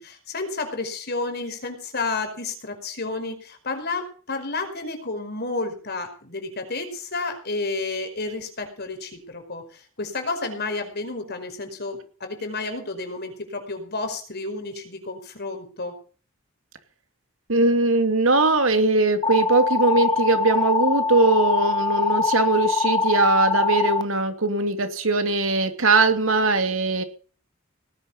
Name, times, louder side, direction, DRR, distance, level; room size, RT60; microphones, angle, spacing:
voice 1, 0.0-15.9, left 3 dB, 55° left, 7 dB, 4.9 m, -31 dB
voice 2, 17.5-27.0, right 3 dB, 75° right, 7 dB, 2.8 m, -20 dB
sound 1, 19.2-24.0, left 4 dB, 20° left, 0.8 m, -23 dB
19.0 x 10.5 x 5.7 m, 0.40 s
head